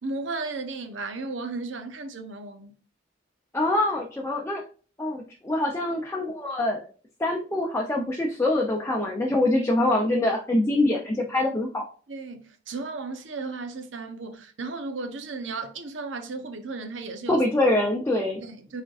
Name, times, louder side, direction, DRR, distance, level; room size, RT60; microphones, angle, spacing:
voice 1, 0.0-2.7 12.1-17.4 18.4-18.8, right 3 dB, 80° right, 0.8 m, -35 dB
voice 2, 3.5-4.6 5.0-6.8 7.2-11.9 17.3-18.4, left 1 dB, 15° left, 0.6 m, -24 dB
4.9 x 4.4 x 2.4 m
head